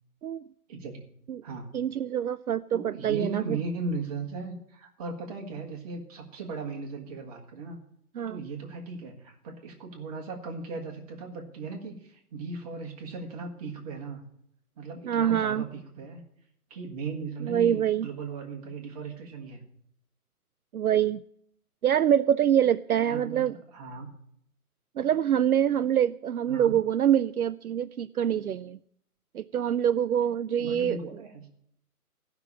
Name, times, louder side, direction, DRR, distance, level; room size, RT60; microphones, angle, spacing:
voice 1, 0.7-1.1 1.4-1.7 2.7-7.8 8.3-14.2 14.8-16.2 16.7-19.6 23.1-24.1 26.5-26.7 30.6-31.5, right 3 dB, 25° right, 1 dB, 1.9 m, -37 dB
voice 2, 1.7-3.6 8.2-8.4 15.1-15.6 17.4-18.1 20.7-21.2 21.8-23.6 25.0-28.8 29.3-31.0, right 9 dB, 70° right, 14 dB, 0.5 m, -25 dB
13.5 x 6.0 x 8.5 m, 0.69 s
figure-of-eight pair, 145°, 45 cm